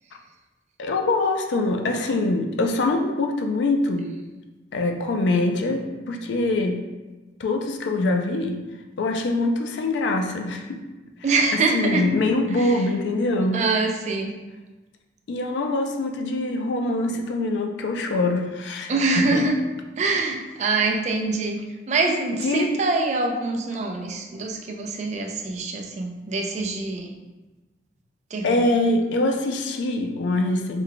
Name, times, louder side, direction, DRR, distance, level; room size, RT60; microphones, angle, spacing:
voice 1, 0.8-4.1 4.7-6.8 7.4-8.6 9.0-10.8 11.5-13.6 15.3-19.4 22.4-22.8 28.4-30.8, left 2 dB, 80° left, 4 dB, 0.4 m, -24 dB
voice 2, 11.2-12.1 12.6-12.8 13.5-14.3 18.9-19.6 19.9-21.6 21.9-27.1 28.3-28.7, right 3 dB, 40° right, 2 dB, 0.4 m, -24 dB
3.2 x 2.2 x 3.8 m, 1.2 s
head